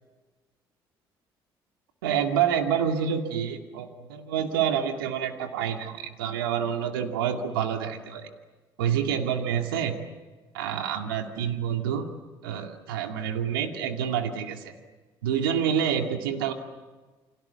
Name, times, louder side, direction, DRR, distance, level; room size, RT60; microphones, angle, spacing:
voice 1, 2.0-8.3 8.8-10.0 10.5-12.1 12.4-14.7 15.2-16.5, right 8 dB, 90° right, 4 dB, 2.3 m, -27 dB
29.5 x 25.5 x 7.0 m, 1.3 s
hypercardioid pair, 60°, 11 cm